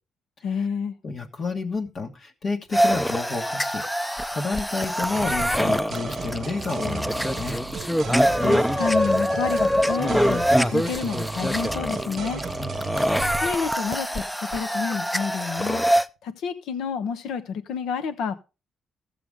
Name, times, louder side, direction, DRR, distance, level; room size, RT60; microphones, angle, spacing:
voice 1, 0.4-0.9 8.4-12.4 13.4-14.2 14.5-15.9 16.2-18.3, left 6 dB, 80° left, 1.1 m, -29 dB
voice 2, 1.0-7.6 12.6-12.8, left 4 dB, 50° left, 1.5 m, -30 dB
sound 1, 2.7-16.0, equal, 5° left, 0.5 m, -24 dB
sound 2, 5.1-13.5, right 7 dB, 55° right, 0.7 m, -36 dB
14.5 x 7.0 x 3.6 m
cardioid pair, 90°, 0 cm